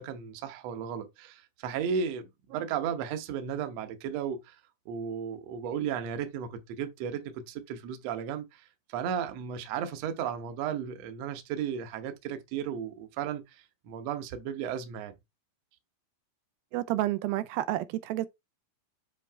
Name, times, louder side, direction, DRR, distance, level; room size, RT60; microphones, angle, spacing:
voice 1, 0.0-4.6 4.9-15.1, right 8 dB, 70° right, 1.6 m, -35 dB
voice 2, 16.7-18.3, right 15 dB, 90° right, 2.4 m, -30 dB
7.5 x 3.2 x 4.5 m
omnidirectional pair, 4.2 m